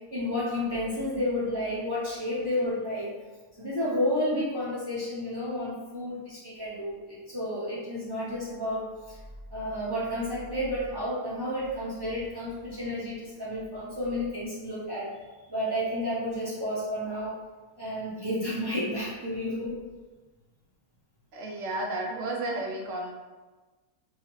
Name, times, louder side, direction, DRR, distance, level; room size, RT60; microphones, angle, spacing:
voice 1, 0.1-3.2 3.6-9.2 9.5-15.1 15.5-17.4 17.8-19.7, left 1 dB, 30° right, -10 dB, 0.4 m, -31 dB
voice 2, 21.3-23.1, right 1 dB, 70° right, 0 dB, 0.7 m, -32 dB
2.7 x 2.4 x 3.0 m, 1.2 s
omnidirectional pair, 1.6 m